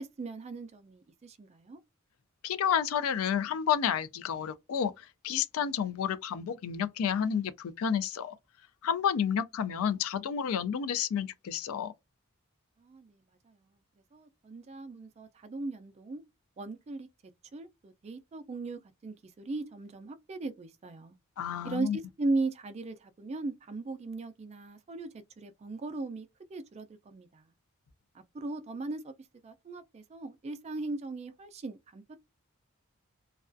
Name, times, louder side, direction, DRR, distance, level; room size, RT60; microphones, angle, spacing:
voice 1, 0.0-1.8 12.8-13.6 14.1-16.2 16.6-17.1 17.5-21.2 21.6-27.5 28.1-29.1 29.4-32.2, right 3 dB, 30° right, 0.3 m, -38 dB
voice 2, 2.4-8.3 8.8-11.9 21.4-22.0, left 8 dB, 85° left, 0.3 m, -30 dB
2.3 x 2.3 x 2.4 m
head